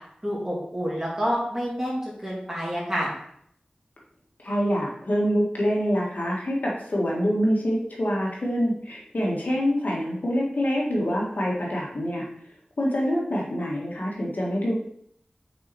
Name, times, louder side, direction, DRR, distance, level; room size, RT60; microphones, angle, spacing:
voice 1, 0.2-3.1, equal, 15° right, -6 dB, 2.6 m, -28 dB
voice 2, 4.4-12.2 12.8-14.7, equal, 65° left, -3 dB, 1.6 m, -25 dB
6.0 x 4.3 x 4.2 m, 0.70 s
wide cardioid pair, 65°, 3 cm